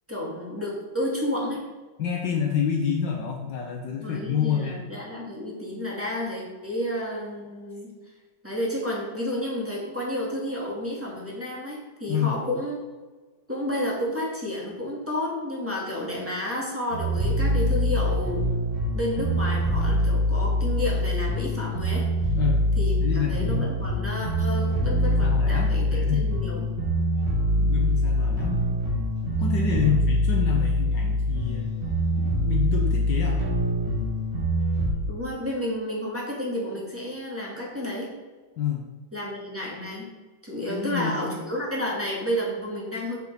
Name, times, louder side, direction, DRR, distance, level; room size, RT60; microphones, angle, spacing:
voice 1, 0.1-1.6 4.0-7.9 8.4-12.8 13.5-18.4 18.9-22.1 22.8-26.7 29.7-30.0 35.1-38.1 39.1-40.1 40.4-43.2, left 1 dB, 5° right, -4 dB, 2.2 m, -31 dB
voice 2, 2.0-4.9 12.1-12.3 22.3-22.6 23.0-23.7 25.2-26.5 27.6-28.6 29.4-31.7 32.1-33.4 38.6-38.8 40.7-41.4, left 8 dB, 65° left, 0 dB, 1.5 m, -28 dB
sound 1, 16.9-34.9, left 1 dB, 60° right, 2.5 m, -24 dB
7.1 x 6.6 x 5.2 m, 1.3 s
omnidirectional pair, 2.2 m